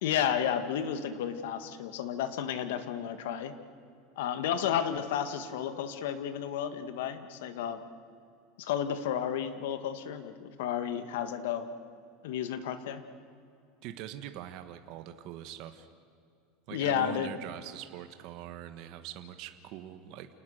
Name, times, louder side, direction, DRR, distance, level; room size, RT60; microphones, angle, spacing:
voice 1, 0.0-3.5 4.2-7.8 8.6-11.7 12.2-13.0 16.7-17.3, left 9 dB, 75° left, 10 dB, 1.8 m, -32 dB
voice 2, 13.8-15.9 16.7-20.3, right 11 dB, 50° right, 8 dB, 1.3 m, -43 dB
28.5 x 19.5 x 6.6 m, 2.5 s
supercardioid pair, 160°, 0 cm